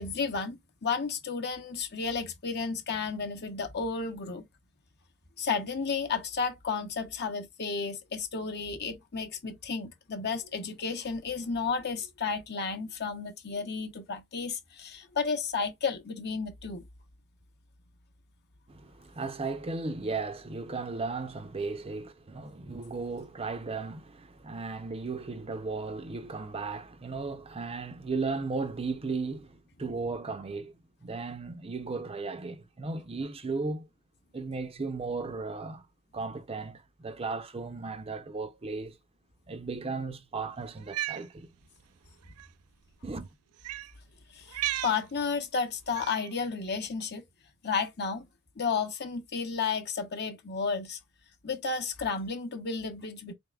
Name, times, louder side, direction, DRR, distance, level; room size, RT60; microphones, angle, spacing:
voice 1, 0.0-4.5 5.4-16.8 44.3-47.2 47.6-48.3 48.6-51.0 51.4-53.3, left 5 dB, 50° left, 0.8 m, -32 dB
voice 2, 18.7-30.7 31.0-33.9 34.3-35.8 36.1-39.0 39.5-41.5 43.0-43.3, right 3 dB, 25° right, 0.5 m, -35 dB
Cat, 40.8-41.2 42.3-42.5 43.6-43.9 44.5-45.0 46.0-46.3, right 13 dB, 85° right, 0.4 m, -34 dB
4.1 x 3.4 x 2.3 m
head